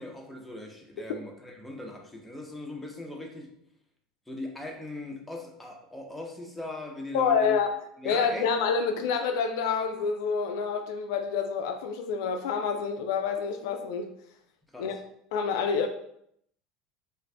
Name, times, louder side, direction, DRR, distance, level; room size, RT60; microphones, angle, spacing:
voice 1, 0.0-3.5 4.3-7.6 8.0-8.5 14.7-15.0, left 1 dB, 5° left, 0 dB, 0.7 m, -39 dB
voice 2, 7.1-7.7 8.0-14.1 14.8-14.9 15.3-15.9, left 6 dB, 75° left, 5 dB, 0.3 m, -27 dB
2.5 x 2.5 x 3.3 m, 0.71 s
hypercardioid pair, 90°, 2 cm